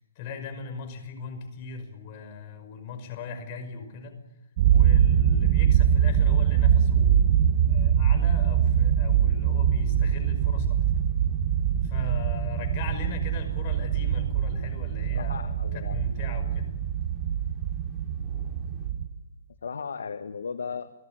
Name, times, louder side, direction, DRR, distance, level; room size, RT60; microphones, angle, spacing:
voice 1, 0.2-4.2 4.7-7.4 7.7-10.8 11.8-16.8, left 5 dB, 30° left, 6 dB, 5.4 m, -39 dB
sound 1, 4.6-19.1, right 9 dB, 35° right, 1.4 m, -23 dB
Thunder, 5.8-18.9, equal, ahead, 5.5 m, -48 dB
voice 2, 15.1-16.0 19.6-20.9, left 5 dB, 85° left, 9 dB, 1.5 m, -36 dB
29.5 x 18.0 x 9.1 m, 1.0 s
hypercardioid pair, 165°, 0 cm